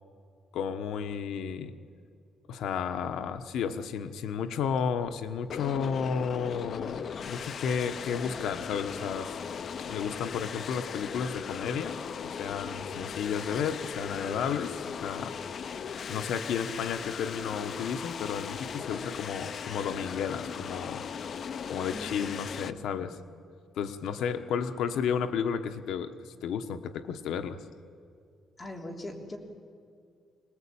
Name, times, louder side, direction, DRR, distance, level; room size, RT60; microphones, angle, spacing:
voice 1, 0.5-1.7 2.5-9.4 9.8-12.0 12.2-15.3 16.1-21.0 21.7-23.2 23.7-27.6, left 7 dB, 85° left, 9 dB, 1.2 m, -32 dB
sound 1, 5.5-22.7, left 7 dB, 45° left, 0.7 m, -38 dB
voice 2, 21.9-23.2 28.6-29.4, left 1 dB, 20° left, 1 dB, 3.3 m, -42 dB
25.5 x 20.0 x 8.7 m, 2.4 s
cardioid pair, 155°, 0 cm